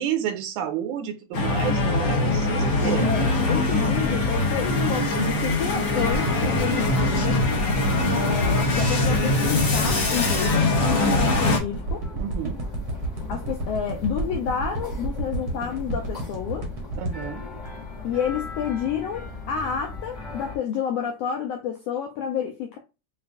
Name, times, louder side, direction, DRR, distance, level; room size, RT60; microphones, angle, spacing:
voice 1, 0.0-3.1 11.1-11.5 12.1-12.6 17.0-17.5, right 10 dB, 85° right, 2.1 m, -30 dB
sound 1, 1.3-11.6, left 2 dB, 60° left, 1.3 m, -22 dB
sound 2, 2.8-20.6, left 4 dB, 35° left, 0.7 m, -38 dB
voice 2, 3.0-7.4 8.1-12.0 13.3-16.7 18.0-22.8, left 8 dB, 80° left, 1.4 m, -30 dB
sound 3, 6.1-18.4 18.9-19.0, right 2 dB, 60° right, 1.0 m, -31 dB
6.5 x 2.5 x 2.6 m
omnidirectional pair, 3.5 m